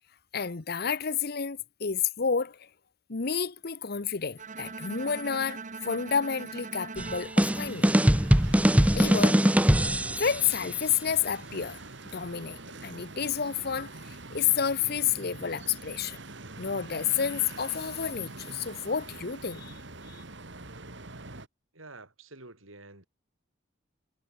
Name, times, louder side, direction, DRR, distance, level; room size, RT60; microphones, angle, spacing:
voice 1, 0.3-2.7 3.1-8.0 8.9-9.4 9.7-9.8 10.1-11.8 12.1-16.2 16.6-19.7 20.1-20.2, left 7 dB, 50° left, 0.9 m, -30 dB
Bowed string instrument, 4.4-8.5, right 4 dB, 40° right, 1.4 m, -42 dB
sound 1, 7.0-10.5, equal, 5° right, 0.9 m, -22 dB
sound 2, 7.4-21.5, right 2 dB, 60° right, 2.9 m, -44 dB
voice 2, 21.7-23.0, right 2 dB, 90° right, 6.2 m, -48 dB
head